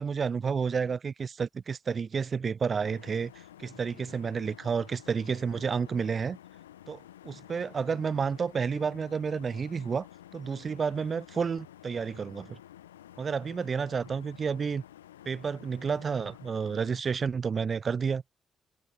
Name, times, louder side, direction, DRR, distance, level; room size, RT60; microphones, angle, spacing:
voice 1, 0.0-3.3 3.6-6.4 6.9-10.1 10.3-12.6 13.2-14.8 15.3-18.2, right 6 dB, 45° right, 0.3 m, -30 dB
sound 1, 2.8-17.0, left 12 dB, 85° left, 0.9 m, -51 dB
figure-of-eight pair, 40°, 0 cm